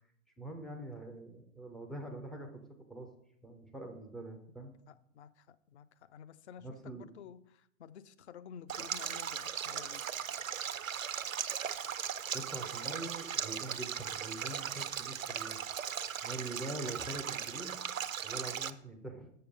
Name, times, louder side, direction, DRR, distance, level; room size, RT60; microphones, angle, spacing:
voice 1, 0.4-2.5 2.9-3.1 3.4-4.7 6.6-7.1 12.3-15.8 16.2-17.8 18.2-19.3, right 2 dB, ahead, 2 dB, 0.3 m, -44 dB
voice 2, 4.9-10.1, left 8 dB, 60° left, 14 dB, 0.7 m, -52 dB
Stream, 8.7-18.7, right 8 dB, 85° right, 0.6 m, -38 dB
6.8 x 6.7 x 5.2 m, 0.71 s
figure-of-eight pair, 105°, 39 cm